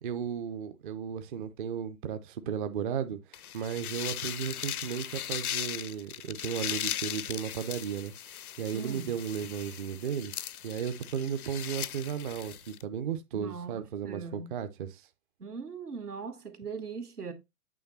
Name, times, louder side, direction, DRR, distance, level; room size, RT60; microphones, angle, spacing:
voice 1, 0.0-8.1 8.6-10.3 10.6-15.1, right 8 dB, 35° right, 0.6 m, -35 dB
sound 1, 3.3-12.8, left 10 dB, 75° left, 0.6 m, -38 dB
voice 2, 8.7-9.2 13.3-14.6 15.4-17.3, right 5 dB, 85° right, 1.5 m, -40 dB
8.6 x 3.2 x 4.0 m
figure-of-eight pair, 125°, 45 cm